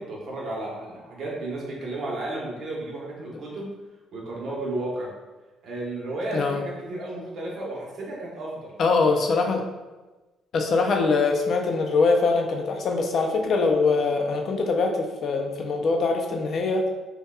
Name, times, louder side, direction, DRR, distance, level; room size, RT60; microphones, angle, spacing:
voice 1, 0.0-3.7 4.1-5.1 5.6-8.7 9.1-9.2, right 2 dB, 55° right, -3 dB, 1.0 m, -33 dB
voice 2, 8.8-9.6 10.5-16.9, left 4 dB, 55° left, 2 dB, 0.5 m, -23 dB
5.4 x 2.3 x 2.3 m, 1.2 s
cardioid pair, 110°, 0 cm